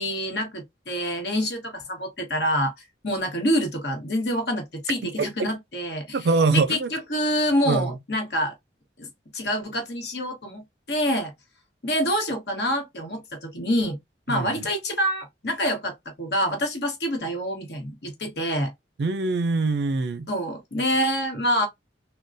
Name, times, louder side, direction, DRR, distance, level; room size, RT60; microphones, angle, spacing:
voice 1, 0.0-2.7 3.0-6.2 6.5-8.5 9.0-11.3 11.8-14.0 14.3-18.7 20.3-21.7, equal, 65° left, 1.2 m, -26 dB
voice 2, 5.2-5.5 6.1-6.9 7.7-7.9 14.3-14.7 19.0-20.3, right 3 dB, 65° right, 0.4 m, -24 dB
3.8 x 2.2 x 2.5 m
head